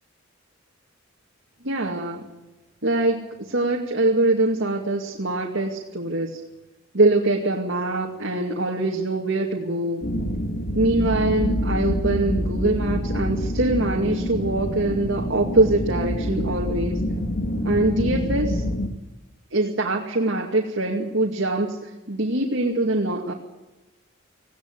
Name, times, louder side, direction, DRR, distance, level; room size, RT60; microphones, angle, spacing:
voice 1, 1.6-2.3 2.8-6.4 6.9-10.1 10.8-17.0 17.6-18.6 19.5-23.3, right 2 dB, 65° right, 0 dB, 2.4 m, -23 dB
sound 1, 10.0-18.9, equal, 60° left, 2.4 m, -26 dB
19.0 x 16.5 x 9.7 m, 1.0 s
head